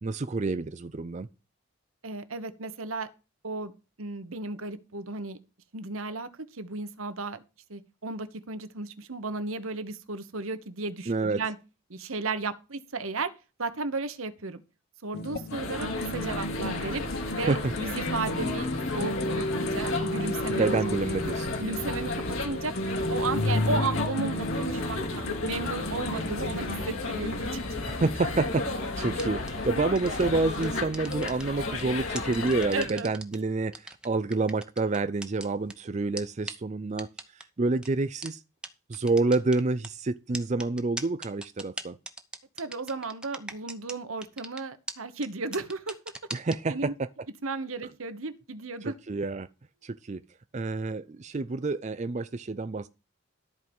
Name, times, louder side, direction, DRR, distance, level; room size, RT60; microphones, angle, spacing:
voice 1, 0.0-1.3 11.1-11.4 17.5-17.7 20.5-21.6 27.9-28.6 29.0-38.4 38.9-42.0 46.3-47.1 48.8-49.5 49.8-50.2 50.5-52.9, right 3 dB, 35° right, 0.4 m, -28 dB
voice 2, 2.0-3.1 3.4-3.7 4.0-5.4 5.7-7.4 7.7-11.5 11.9-13.3 13.6-14.6 15.0-17.0 17.3-20.8 21.6-22.7 23.1-27.8 32.7-33.1 42.6-45.9 46.7-46.9 47.4-49.0, right 3 dB, 80° right, 1.3 m, -34 dB
sound 1, 15.1-26.8, left 1 dB, 50° left, 0.9 m, -33 dB
sound 2, 15.5-32.9, left 2 dB, 75° left, 4.1 m, -33 dB
sound 3, 29.2-29.5 30.0-30.2 30.6-31.8 32.2-33.4 33.7-35.7 36.2-36.3 36.5-36.6 37.0-37.4 37.8-37.9 38.2-38.3 38.6-38.7 38.9-39.9 40.3-44.0 44.2-44.6 44.9-45.0 45.2-45.3 45.5-46.6, right 1 dB, 5° right, 0.9 m, -38 dB
13.0 x 4.7 x 7.1 m
head